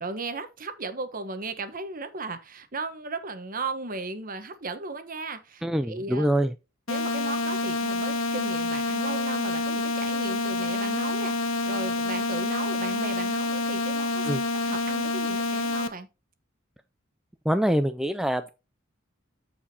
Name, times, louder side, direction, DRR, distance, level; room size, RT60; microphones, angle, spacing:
voice 1, 0.0-6.3 6.9-16.1, right 3 dB, 45° right, 1.1 m, -36 dB
voice 2, 5.6-6.5 14.2-14.4 17.5-18.5, equal, ahead, 0.3 m, -25 dB
sound 1, 6.9-15.9, left 3 dB, 90° left, 1.0 m, -28 dB
14.0 x 4.9 x 2.8 m
head